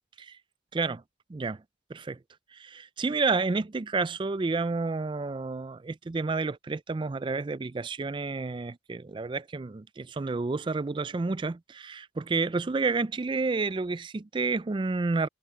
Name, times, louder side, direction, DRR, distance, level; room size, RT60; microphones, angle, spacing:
voice 1, 0.7-1.0 1.3-1.6 1.9-2.2 2.5-15.3, right 3 dB, 25° right, 0.3 m, -30 dB
head